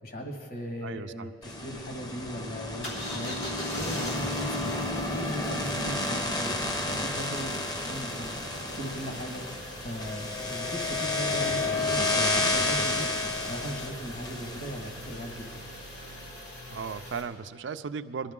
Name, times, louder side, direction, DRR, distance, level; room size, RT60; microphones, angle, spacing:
voice 1, 0.0-6.6 6.9-7.6 7.9-15.6, equal, 55° left, 2 dB, 1.8 m, -38 dB
voice 2, 0.8-1.3 16.7-18.3, right 5 dB, 85° right, 12 dB, 0.4 m, -36 dB
sound 1, 1.4-15.6, left 2 dB, 20° left, 0.9 m, -31 dB
sound 2, 2.8-17.2, left 1 dB, 90° left, 3.4 m, -41 dB
22.0 x 11.5 x 3.7 m, 2.1 s
head